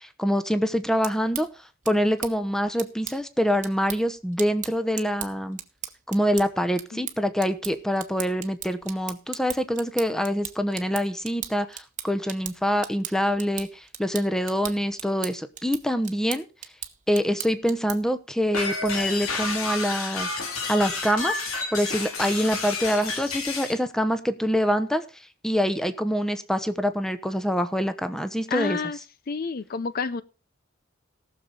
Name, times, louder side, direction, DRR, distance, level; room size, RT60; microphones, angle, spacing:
voice 1, 0.0-1.5 1.9-5.6 6.1-16.4 17.1-20.4 20.7-21.4 21.7-25.0 25.4-28.8, equal, 5° left, 10 dB, 0.9 m, -25 dB
sound 1, 0.8-18.2, right 11 dB, 35° right, 1.1 m, -39 dB
sound 2, 18.5-23.8, left 3 dB, 85° left, 2.5 m, -30 dB
voice 2, 28.5-29.0 29.3-30.2, left 4 dB, 45° left, 15 dB, 0.5 m, -29 dB
18.5 x 6.8 x 4.0 m, 0.32 s
head